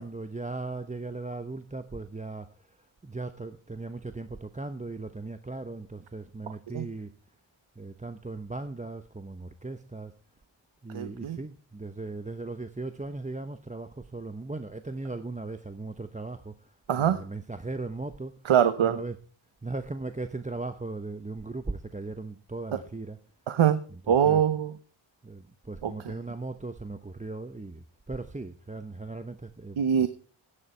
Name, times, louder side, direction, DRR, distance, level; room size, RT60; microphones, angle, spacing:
voice 1, 0.0-2.5 3.0-7.1 7.8-10.1 10.8-18.3 18.8-19.2 19.6-23.2 23.9-24.4 25.2-30.1, right 3 dB, 15° right, 0.9 m, -38 dB
voice 2, 10.9-11.4 16.9-17.2 18.4-19.0 23.5-23.8 24.1-24.7 25.8-26.1 29.8-30.1, right 9 dB, 75° right, 0.9 m, -23 dB
13.5 x 9.9 x 4.5 m
cardioid pair, 55°, 49 cm